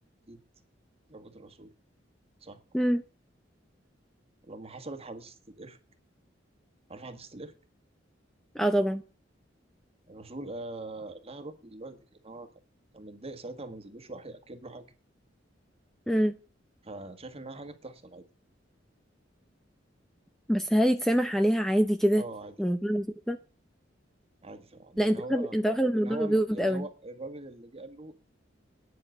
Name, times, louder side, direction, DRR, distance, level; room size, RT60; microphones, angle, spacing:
voice 1, 1.1-1.7 2.4-2.6 4.4-5.8 6.9-7.5 10.1-12.5 12.9-14.8 16.8-18.2 22.1-22.5 24.4-25.5 26.0-28.1, right 2 dB, 35° right, 1.7 m, -42 dB
voice 2, 8.5-9.0 16.1-16.3 20.5-22.2 22.6-23.4 25.0-26.8, equal, ahead, 0.7 m, -25 dB
9.7 x 7.5 x 7.9 m
head